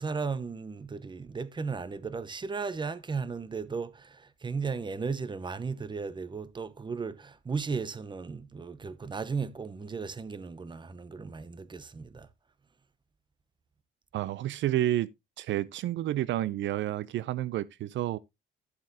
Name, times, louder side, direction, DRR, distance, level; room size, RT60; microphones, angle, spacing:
voice 1, 0.0-12.3, right 5 dB, 25° right, 0.8 m, -35 dB
voice 2, 14.1-15.1 15.4-18.2, right 13 dB, 70° right, 0.5 m, -30 dB
11.5 x 7.5 x 2.7 m
cardioid pair, 90°, 20 cm